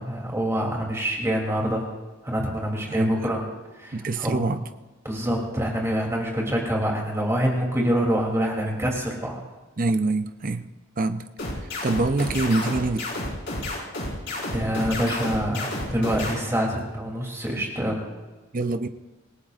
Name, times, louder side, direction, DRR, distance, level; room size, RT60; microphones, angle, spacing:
voice 1, 0.0-1.9 2.2-3.4 3.8-4.4 5.0-9.4 14.5-18.1, equal, 15° right, -1 dB, 3.1 m, -26 dB
voice 2, 2.9-3.3 3.9-4.6 9.8-10.7 11.0-11.3 11.8-13.1 18.5-18.9, right 2 dB, 40° right, 9 dB, 0.7 m, -25 dB
sound 1, 11.4-16.3, left 2 dB, 55° left, 5.1 m, -30 dB
27.0 x 17.5 x 2.5 m, 1.2 s
head